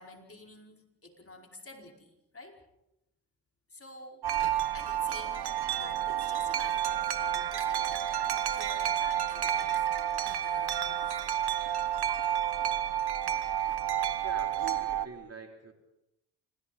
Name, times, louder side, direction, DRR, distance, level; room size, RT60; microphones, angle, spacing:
voice 1, 0.0-2.6 3.7-4.4 4.7-5.5 5.7-7.9 8.3-9.9 10.4-11.4, left 2 dB, 35° left, 2 dB, 5.0 m, -49 dB
Wind chime, 4.2-15.1, right 10 dB, 70° right, 1.4 m, -30 dB
voice 2, 14.2-15.7, right 3 dB, 35° right, 3 dB, 3.8 m, -46 dB
27.0 x 27.0 x 4.3 m, 0.86 s
supercardioid pair, 55°, 41 cm